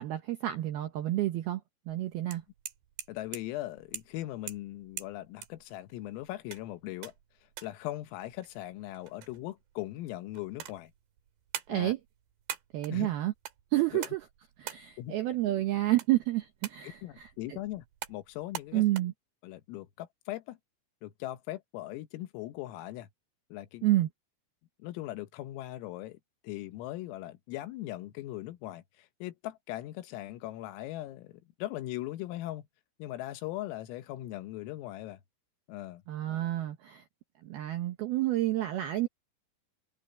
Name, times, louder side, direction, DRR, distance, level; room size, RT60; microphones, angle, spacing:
voice 1, 0.0-1.6 1.9-2.4 11.7-12.0 12.7-13.3 13.7-14.2 14.6-17.6 18.7-19.1 23.8-24.1 36.1-37.0 37.4-39.1, right 15 dB, 75° right, 2.3 m, -29 dB
sound 1, 1.9-19.0, right 11 dB, 60° right, 3.5 m, -46 dB
voice 2, 3.1-7.1 7.6-10.9 11.7-11.9 12.9-13.1 13.9-14.1 15.0-15.2 16.8-18.8 19.4-20.6 21.0-23.1 23.5-23.9 24.8-26.2 26.4-32.7 33.0-35.2 35.7-36.0, left 15 dB, 85° left, 3.8 m, -39 dB
omnidirectional pair, 5.9 m